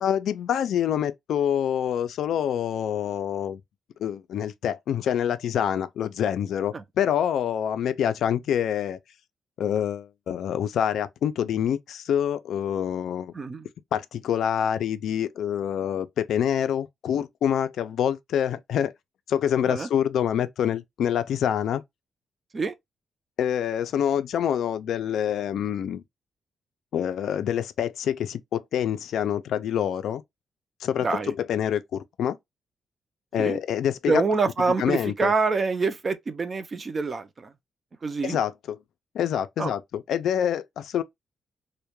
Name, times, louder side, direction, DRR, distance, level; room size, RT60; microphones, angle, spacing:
voice 1, 0.0-3.6 4.0-9.0 9.6-13.3 13.9-18.9 19.3-21.8 23.4-26.0 26.9-30.2 30.8-32.4 33.3-34.2 34.8-35.3 38.2-38.8 39.1-41.0, left 9 dB, 80° left, 0.3 m, -26 dB
voice 2, 13.3-13.7 19.7-19.9 22.5-22.7 31.0-31.3 33.4-33.6 34.1-37.5 38.0-38.4 39.6-39.7, right 4 dB, 35° right, 0.4 m, -26 dB
2.2 x 2.1 x 2.9 m
cardioid pair, 110°, 0 cm